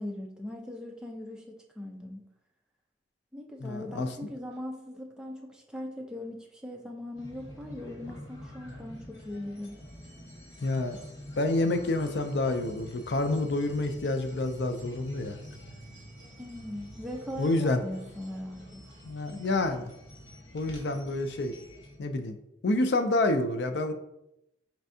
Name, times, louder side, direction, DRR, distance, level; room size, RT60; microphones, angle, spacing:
voice 1, 0.0-2.2 3.3-9.8 16.4-18.8, left 1 dB, 5° right, 0 dB, 0.4 m, -40 dB
voice 2, 3.6-4.1 10.6-11.0 11.4-15.4 17.4-17.8 19.0-19.8 20.5-21.5 22.0-22.4 22.6-23.9, left 2 dB, 65° left, 8 dB, 0.4 m, -28 dB
sound 1, 7.2-22.0, equal, 80° left, 1.2 m, -47 dB
4.5 x 3.3 x 2.7 m, 0.85 s
head